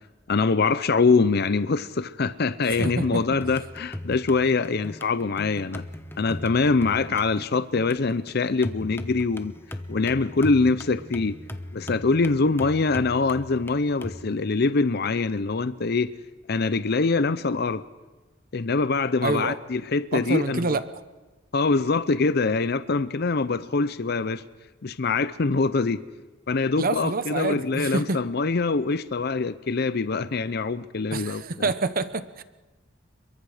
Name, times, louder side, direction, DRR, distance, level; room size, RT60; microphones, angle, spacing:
voice 1, 0.3-5.8 6.2-9.5 9.9-11.4 11.7-16.1 16.5-17.8 18.5-20.8 21.5-24.4 24.8-26.0 26.5-31.7, left 4 dB, 55° left, 13 dB, 0.6 m, -24 dB
sound 1, 2.7-14.2, left 1 dB, 10° left, 1.0 m, -39 dB
voice 2, 2.8-3.2 19.2-19.6 20.1-20.8 26.8-28.2 31.1-32.4, right 3 dB, 50° right, 12 dB, 0.9 m, -27 dB
28.5 x 23.0 x 5.0 m, 1.2 s
head